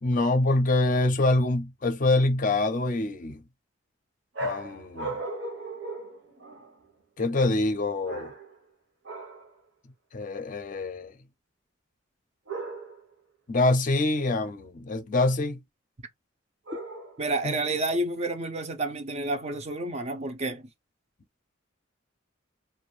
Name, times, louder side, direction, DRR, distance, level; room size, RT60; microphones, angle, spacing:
voice 1, 0.0-3.4 4.4-5.1 7.2-8.3 10.1-11.1 13.5-15.6 17.4-17.5, left 2 dB, 40° left, 0.5 m, -25 dB
sound 1, 4.3-6.9 8.0-8.7 9.0-9.5 12.5-13.1 16.7-17.4, right 2 dB, 65° right, 0.8 m, -37 dB
voice 2, 17.2-20.7, right 2 dB, 35° right, 0.5 m, -30 dB
2.5 x 2.2 x 3.1 m
head